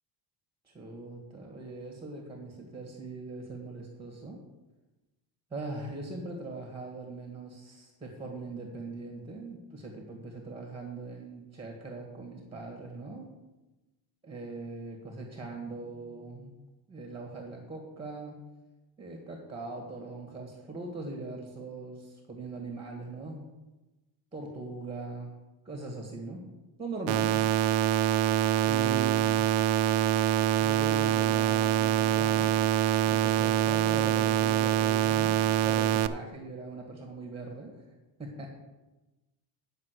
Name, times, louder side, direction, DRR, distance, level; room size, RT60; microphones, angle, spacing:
voice 1, 0.6-4.4 5.5-13.3 14.2-16.6 16.9-18.4 19.0-23.4 24.3-25.3 25.6-26.4 26.8-27.3 28.6-29.3 33.0-37.7 38.2-38.5, right 3 dB, 10° right, 0 dB, 1.6 m, -41 dB
sound 1, 27.1-36.1, right 11 dB, 75° right, 0.7 m, -25 dB
9.7 x 5.5 x 8.2 m, 1.1 s
cardioid pair, 140°, 50 cm